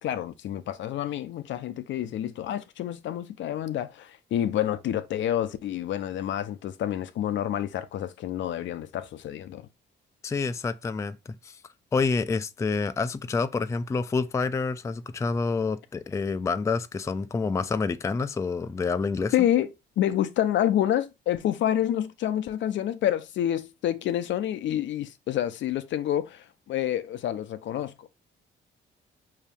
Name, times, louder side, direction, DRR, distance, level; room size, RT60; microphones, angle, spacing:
voice 1, 0.0-9.6 19.3-19.7 20.0-28.1, left 11 dB, 70° left, 0.5 m, -28 dB
voice 2, 10.2-11.6 11.9-19.3, left 4 dB, 15° left, 0.3 m, -28 dB
4.9 x 2.8 x 3.4 m
cardioid pair, 90°, 20 cm